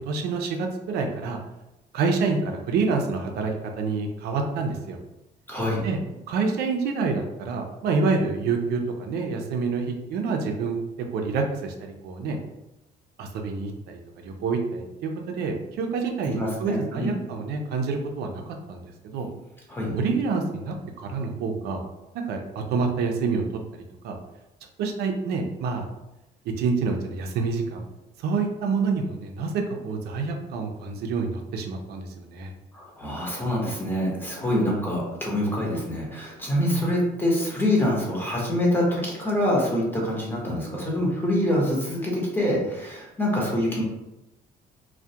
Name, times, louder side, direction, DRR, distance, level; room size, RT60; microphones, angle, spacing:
voice 1, 0.1-1.4 1.9-3.5 3.8-5.0 5.8-6.0 6.3-10.8 11.1-12.4 13.2-18.4 18.7-19.3 19.9-21.8 22.3-23.4 23.7-24.2 24.8-25.9 26.5-27.8 28.2-32.5 36.7-36.9, right 4 dB, 75° right, 3 dB, 0.4 m, -27 dB
voice 2, 5.5-5.8 16.3-17.1 19.7-19.9 32.7-43.8, left 1 dB, 10° left, -3 dB, 0.8 m, -25 dB
2.3 x 2.1 x 2.7 m, 0.95 s
cardioid pair, 110°, 17 cm